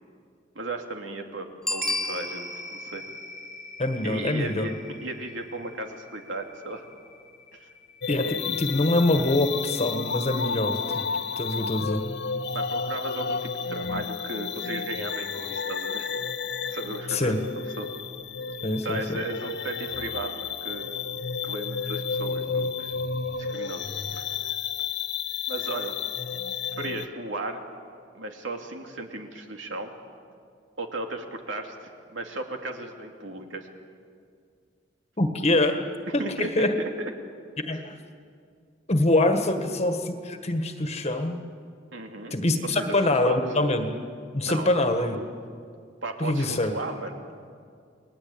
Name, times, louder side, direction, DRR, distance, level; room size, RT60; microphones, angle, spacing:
voice 1, 0.5-3.0 4.0-6.8 7.5-7.7 12.5-16.1 16.7-17.5 17.8-17.9 18.8-21.0 21.4-22.9 23.4-23.9 24.1-24.3 25.5-26.0 26.8-27.6 28.1-29.9 30.8-33.7 36.2-37.1 37.7-37.8 41.9-42.3 42.6-42.9 43.2-43.4 44.4-44.7 45.0-45.3 46.0-47.2, right 2 dB, 90° right, 3 dB, 2.8 m, -35 dB
Bicycle bell, 1.6-2.8 8.2-8.3, left 2 dB, 5° left, 0.6 m, -31 dB
sound 1, 1.8-10.4 10.7-10.8, equal, 15° right, 3.4 m, -41 dB
voice 2, 3.8-4.7 8.1-10.8 11.4-12.0 17.1-17.4 18.6-19.2 35.2-35.8 36.1-36.7 37.7-37.8 38.9-41.4 42.3-43.9 44.3-45.2 46.2-46.7, left 2 dB, 35° left, 6 dB, 1.6 m, -24 dB
sound 2, 8.0-27.1, left 5 dB, 65° left, 1.0 m, -32 dB
29.5 x 20.5 x 8.8 m, 2.3 s
head